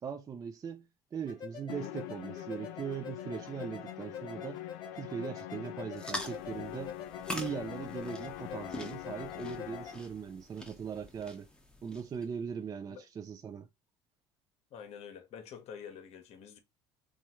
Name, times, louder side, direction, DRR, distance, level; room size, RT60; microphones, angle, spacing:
voice 1, 0.0-4.6 4.9-6.9 7.3-11.5 11.8-13.7, right 7 dB, 30° right, 0.4 m, -40 dB
sound 1, 1.3-10.0, left 6 dB, 35° left, 1.1 m, -47 dB
Musical instrument, 1.7-10.2, left 15 dB, 75° left, 0.4 m, -44 dB
sound 2, 5.9-12.3, left 1 dB, 5° left, 0.9 m, -45 dB
voice 2, 14.7-16.6, left 7 dB, 55° left, 0.8 m, -47 dB
3.0 x 2.3 x 2.9 m
supercardioid pair, 80°, 13 cm